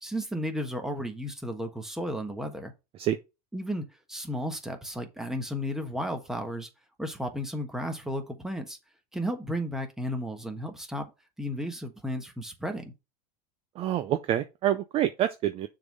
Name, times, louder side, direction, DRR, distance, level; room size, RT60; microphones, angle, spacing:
voice 1, 0.0-2.7 3.5-6.7 7.0-8.8 9.1-11.1 11.4-12.9, equal, ahead, 1.2 m, -33 dB
voice 2, 13.8-15.7, right 11 dB, 30° right, 0.5 m, -27 dB
6.7 x 3.8 x 5.2 m
supercardioid pair, 140°, 21 cm